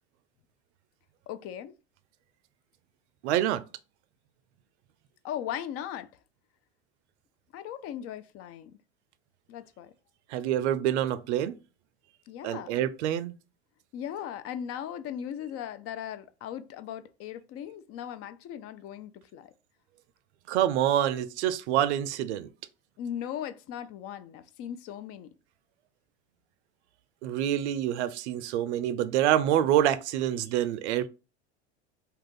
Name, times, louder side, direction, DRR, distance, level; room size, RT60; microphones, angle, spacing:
voice 1, 1.3-1.7 5.2-6.1 7.5-8.8 9.5-9.9 12.3-12.8 13.9-19.5 23.0-25.3, left 10 dB, 45° left, 0.4 m, -38 dB
voice 2, 3.2-3.6 10.3-11.6 12.4-13.3 20.5-22.5 27.2-31.1, right 11 dB, 85° right, 0.5 m, -26 dB
2.8 x 2.4 x 3.6 m
supercardioid pair, 100°, 33 cm